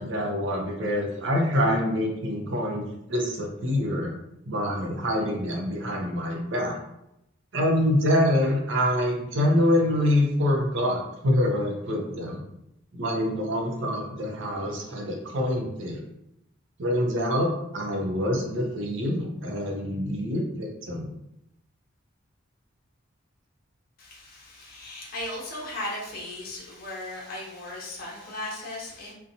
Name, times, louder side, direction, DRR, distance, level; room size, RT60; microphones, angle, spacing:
voice 1, 0.0-4.1 4.5-6.8 7.5-12.4 12.9-16.0 16.8-21.1, left 1 dB, 65° right, 0 dB, 0.6 m, -26 dB
voice 2, 24.0-29.1, left 1 dB, 45° left, -4 dB, 0.7 m, -37 dB
2.7 x 2.2 x 2.6 m, 0.82 s
head